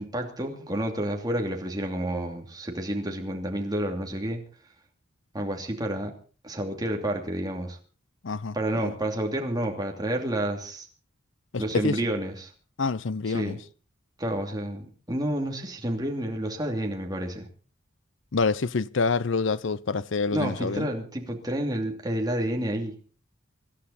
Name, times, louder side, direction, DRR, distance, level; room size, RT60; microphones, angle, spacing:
voice 1, 0.0-4.4 5.3-6.1 6.4-7.8 8.5-10.9 11.6-12.5 13.3-13.6 14.2-17.5 20.3-22.9, right 1 dB, 20° right, 2.8 m, -30 dB
voice 2, 8.2-8.9 11.5-12.0 12.8-13.6 18.3-20.9, left 4 dB, 65° left, 0.6 m, -27 dB
25.5 x 11.5 x 4.3 m
head